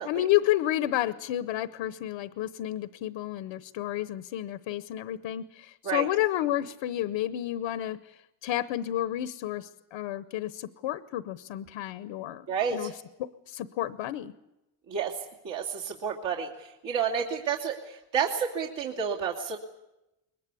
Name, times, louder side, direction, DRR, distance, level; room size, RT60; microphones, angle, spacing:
voice 1, 0.0-12.9 13.5-14.3, left 13 dB, 80° left, 13 dB, 1.0 m, -31 dB
voice 2, 12.5-12.9 14.9-19.6, right 7 dB, 60° right, -2 dB, 2.9 m, -31 dB
22.0 x 20.5 x 8.4 m, 0.94 s
cardioid pair, 85°, 48 cm